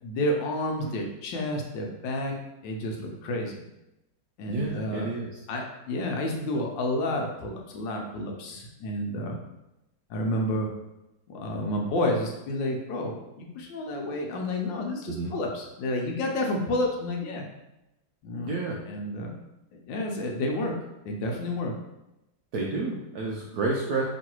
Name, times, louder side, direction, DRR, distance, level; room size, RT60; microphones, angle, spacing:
voice 1, 0.0-2.4 2.6-3.5 4.4-5.1 5.5-9.4 10.1-10.7 11.3-17.4 18.2-18.6 18.9-19.3 19.7-20.7 21.0-21.7, left 1 dB, 75° left, 1 dB, 1.3 m, -30 dB
voice 2, 4.5-5.3 15.1-15.3 18.4-18.8 22.5-24.0, right 3 dB, 75° right, -3 dB, 0.9 m, -30 dB
3.1 x 3.0 x 4.4 m, 0.92 s
omnidirectional pair, 2.2 m